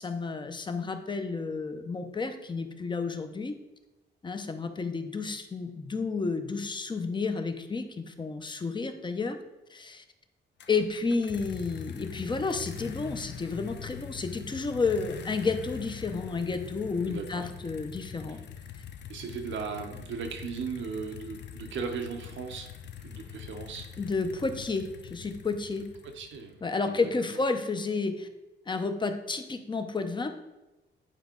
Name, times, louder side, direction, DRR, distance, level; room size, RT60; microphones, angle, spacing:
voice 1, 0.0-3.5 4.2-9.4 9.7-10.0 10.7-18.4 24.0-25.9 26.6-28.3 28.7-30.4, left 4 dB, 25° left, 7 dB, 0.7 m, -31 dB
sound 1, 10.6-26.6, left 8 dB, 65° left, 0.6 m, -43 dB
voice 2, 17.0-17.5 18.3-18.4 19.1-22.7 23.0-23.9 26.0-27.1, right 5 dB, 85° right, 6 dB, 1.0 m, -37 dB
9.3 x 4.7 x 3.8 m, 1.0 s
cardioid pair, 120°, 19 cm